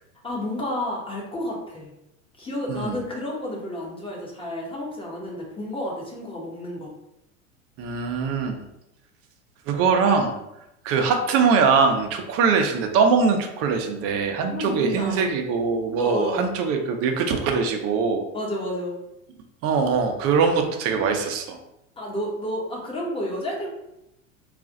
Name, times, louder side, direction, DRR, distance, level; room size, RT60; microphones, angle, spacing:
voice 1, 0.2-1.9 2.4-6.9 14.5-15.3 16.0-16.4 18.3-19.0 22.0-23.7, left 1 dB, 15° left, -2 dB, 0.9 m, -31 dB
voice 2, 7.8-8.6 9.7-10.3 10.8-18.2 19.6-21.6, right 5 dB, 35° right, 4 dB, 0.5 m, -22 dB
2.4 x 2.4 x 3.9 m, 0.86 s
hypercardioid pair, 90°, 42 cm